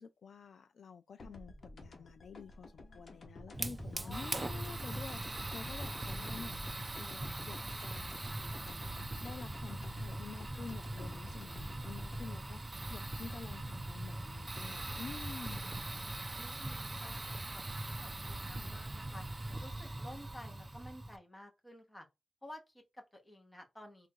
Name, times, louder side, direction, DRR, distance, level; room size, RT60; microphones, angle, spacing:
voice 1, 0.0-8.1 8.6-15.7 18.4-18.8, left 5 dB, 80° left, 0.3 m, -50 dB
sound 1, 1.2-14.0, left 2 dB, 55° left, 1.1 m, -52 dB
Fire, 3.5-21.2, right 2 dB, 25° right, 0.4 m, -41 dB
voice 2, 3.9-4.3 13.3-13.6 15.8-19.3 19.6-22.1 22.4-24.1, equal, 10° left, 1.1 m, -53 dB
3.6 x 2.5 x 4.4 m
wide cardioid pair, 130°, 0 cm